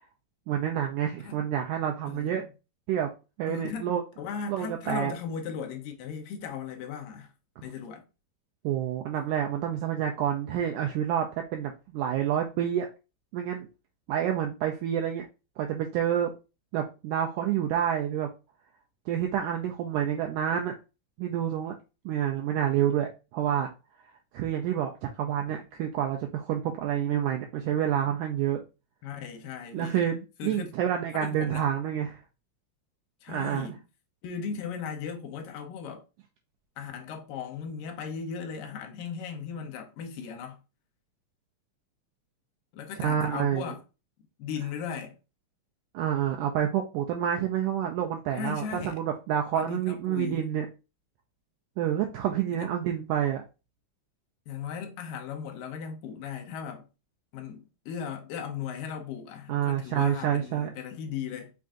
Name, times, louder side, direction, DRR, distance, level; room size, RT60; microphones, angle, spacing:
voice 1, 0.5-2.4 2.9-3.1 3.4-4.0 4.5-5.1 8.6-12.9 13.3-13.7 14.1-15.3 15.6-16.3 16.7-18.3 19.1-20.7 21.2-21.8 22.1-23.7 24.3-28.6 29.7-32.2 33.3-33.7 43.0-43.7 45.9-50.7 51.8-53.4 59.5-60.7, right 10 dB, 90° right, 1.8 m, -28 dB
voice 2, 2.1-2.5 3.5-7.3 7.6-8.1 29.0-30.0 30.4-30.7 31.1-31.7 33.2-33.8 34.2-36.0 36.8-40.6 42.7-43.8 44.4-45.2 48.3-49.0 49.5-50.5 52.6-52.7 54.5-56.9 57.3-61.5, left 7 dB, 75° left, 2.3 m, -37 dB
5.5 x 2.5 x 3.6 m
omnidirectional pair, 4.1 m